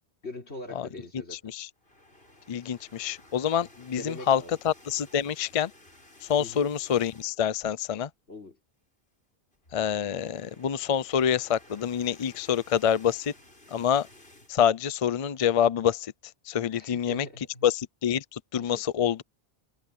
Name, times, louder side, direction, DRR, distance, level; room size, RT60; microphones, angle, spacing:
voice 1, 0.2-1.6 3.9-4.6 6.4-6.7 8.3-8.6 16.8-17.7 18.6-18.9, left 1 dB, 90° left, 4.0 m, -42 dB
sound 1, 1.8-7.6 7.9-8.1 8.4-8.5 9.5-14.6, left 1 dB, 65° left, 6.7 m, -55 dB
voice 2, 2.5-5.7 6.2-8.1 9.7-13.3 13.7-14.1 14.5-16.1 16.5-17.3 17.6-19.2, left 9 dB, 40° left, 0.5 m, -26 dB
omnidirectional pair, 1.1 m